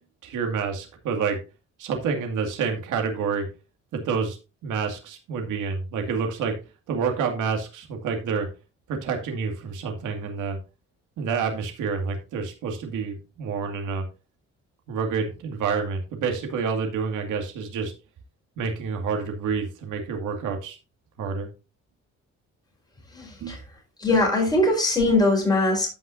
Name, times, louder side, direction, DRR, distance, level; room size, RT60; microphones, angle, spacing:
voice 1, 0.2-1.4 1.8-3.5 3.9-4.4 4.6-6.6 6.9-8.5 8.9-10.6 11.2-14.1 14.9-17.9 18.6-20.8 21.2-21.5 23.4-23.6, right 5 dB, 90° right, 3 dB, 2.3 m, -28 dB
voice 2, 23.1-23.6 24.0-25.9, left 2 dB, 15° left, 0 dB, 4.4 m, -21 dB
15.0 x 5.6 x 2.7 m, 0.31 s
cardioid pair, 90°, 30 cm